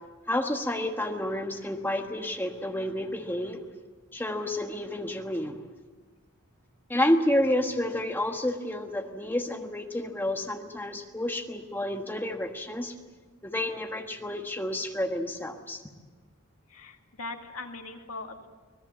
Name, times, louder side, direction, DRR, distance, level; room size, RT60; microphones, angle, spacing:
voice 1, 0.3-3.6 4.1-5.6 6.9-12.9 13.4-15.8, left 1 dB, 10° left, 3 dB, 1.4 m, -30 dB
voice 2, 16.7-18.5, left 3 dB, 80° left, 3 dB, 2.3 m, -40 dB
25.0 x 19.0 x 7.5 m, 1.3 s
head